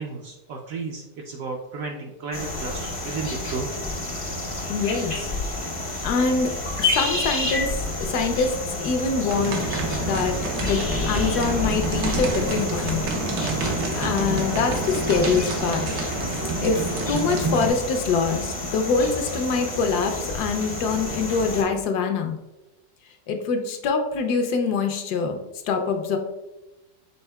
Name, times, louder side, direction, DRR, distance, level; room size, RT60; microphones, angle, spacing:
voice 1, 0.0-3.7, right 4 dB, 70° right, 1 dB, 0.8 m, -33 dB
sound 1, 2.3-21.6, left 2 dB, 45° left, 0.4 m, -30 dB
voice 2, 4.7-5.3 6.0-6.5 6.8-7.7 8.0-8.5 8.8-9.7 10.1-13.0 14.0-15.8 16.6-22.4 23.3-25.4 25.6-26.2, left 4 dB, 75° left, 5 dB, 1.1 m, -24 dB
sound 2, 9.3-17.7, right 3 dB, 90° right, 1.4 m, -28 dB
5.4 x 4.2 x 2.2 m, 1.0 s
omnidirectional pair, 1.8 m